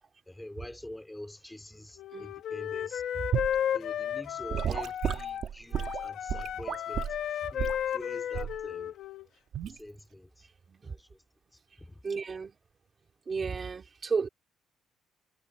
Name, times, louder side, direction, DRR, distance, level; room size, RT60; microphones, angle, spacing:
voice 1, 0.3-3.0 3.7-7.1 7.3-8.9 9.6-10.5 10.8-11.2 11.8-12.0, left 1 dB, 5° left, 3.6 m, -46 dB
Wind instrument woodwind instrument, 2.0-5.4 5.7-9.3, left 9 dB, 55° left, 1.8 m, -34 dB
Gurgling / Sink (filling or washing) / Liquid, 3.3-3.6 4.5-7.2 7.6-7.8 8.3-8.6 9.5-9.8, right 9 dB, 50° right, 3.1 m, -32 dB
voice 2, 12.0-12.5 13.3-14.3, right 5 dB, 25° right, 2.6 m, -33 dB
cardioid pair, 160°, 0 cm